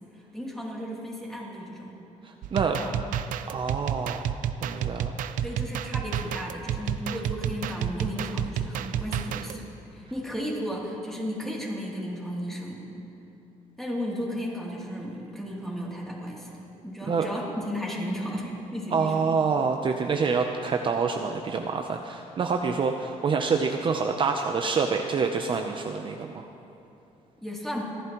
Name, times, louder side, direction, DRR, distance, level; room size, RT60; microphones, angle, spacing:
voice 1, 0.3-1.9 2.7-2.9 5.4-9.6 9.9-12.9 13.8-19.3 27.4-27.8, equal, 5° left, -4 dB, 2.9 m, -34 dB
voice 2, 2.2-2.8 3.5-4.3 4.6-5.2 17.0-17.3 18.9-26.5, right 5 dB, 40° right, 4 dB, 0.7 m, -27 dB
sound 1, 2.4-9.6, right 9 dB, 80° right, 0.6 m, -30 dB
29.5 x 11.5 x 3.1 m, 2.9 s
cardioid pair, 120°, 13 cm